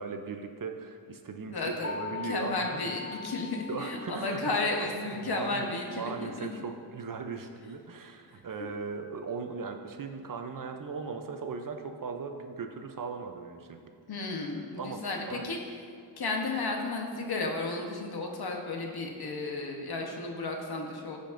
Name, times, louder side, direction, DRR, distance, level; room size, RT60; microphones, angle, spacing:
voice 1, 0.0-3.2 3.7-4.6 5.2-13.8 14.8-15.6, right 4 dB, 45° right, 5 dB, 0.6 m, -38 dB
voice 2, 1.5-1.9 2.3-6.5 14.1-15.6 16.2-21.2, left 3 dB, 55° left, 1 dB, 1.1 m, -33 dB
sound 1, 1.8-4.6, left 5 dB, 25° right, 1.2 m, -40 dB
14.5 x 5.1 x 2.6 m, 2.3 s
wide cardioid pair, 115°, 47 cm